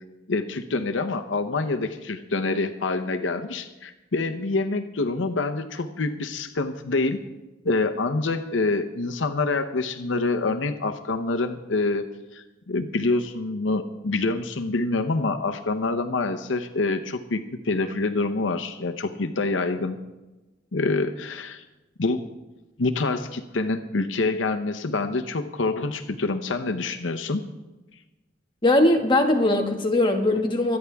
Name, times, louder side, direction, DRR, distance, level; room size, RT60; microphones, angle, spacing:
voice 1, 0.3-7.2 7.6-12.1 12.3-20.0 20.7-21.6 22.0-22.2 22.8-27.4, left 3 dB, 85° left, 8 dB, 0.8 m, -26 dB
voice 2, 28.6-30.8, left 1 dB, 25° left, 2 dB, 1.9 m, -20 dB
25.0 x 9.7 x 3.5 m, 1.1 s
head